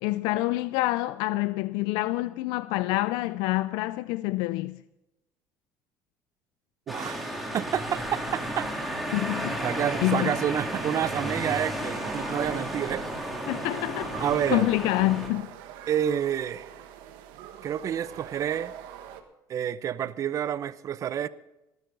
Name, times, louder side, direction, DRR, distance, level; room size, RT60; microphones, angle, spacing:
voice 1, 0.0-4.8 9.1-9.6 10.0-10.4 13.5-15.5, left 18 dB, 80° left, 0.4 m, -27 dB
sound 1, 6.9-15.3, right 1 dB, ahead, 3.3 m, -33 dB
voice 2, 6.9-8.7 9.6-13.0 14.2-14.7 15.9-16.7 17.6-18.7 19.5-21.3, right 9 dB, 45° right, 0.7 m, -29 dB
sound 2, 11.9-19.2, right 10 dB, 80° right, 1.5 m, -44 dB
18.5 x 12.0 x 3.9 m
cardioid pair, 110°, 8 cm